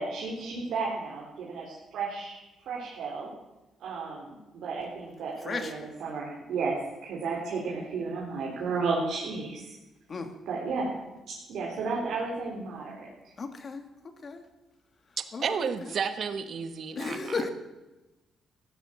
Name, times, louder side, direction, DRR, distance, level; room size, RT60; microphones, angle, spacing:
voice 1, 0.0-2.4 2.7-3.3 3.8-6.8 7.0-9.8 10.5-10.9 11.3-13.3, right 4 dB, 75° right, -3 dB, 4.1 m, -33 dB
voice 2, 5.4-5.9 10.1-10.3 13.4-13.9 14.2-14.4 15.3-15.9 17.0-17.5, left 4 dB, 45° left, 6 dB, 2.5 m, -35 dB
voice 3, 15.2-17.4, right 6 dB, 60° right, 10 dB, 1.3 m, -32 dB
16.0 x 12.0 x 7.5 m, 1.1 s
cardioid pair, 75°, 0 cm